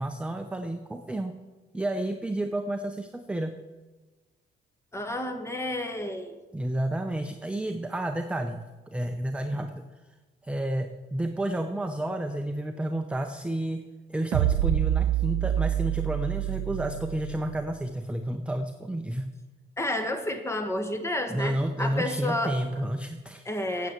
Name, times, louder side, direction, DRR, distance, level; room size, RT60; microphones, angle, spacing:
voice 1, 0.0-1.3 1.7-3.6 6.5-10.1 10.4-19.3 21.3-23.4, right 1 dB, 5° right, 6 dB, 0.6 m, -31 dB
voice 2, 4.9-6.4 19.8-22.6 23.4-23.9, left 1 dB, 15° left, 7 dB, 1.5 m, -30 dB
sound 1, 14.3-17.7, right 12 dB, 85° right, 0.5 m, -27 dB
9.3 x 7.9 x 7.2 m, 1.2 s
cardioid pair, 90°, 20 cm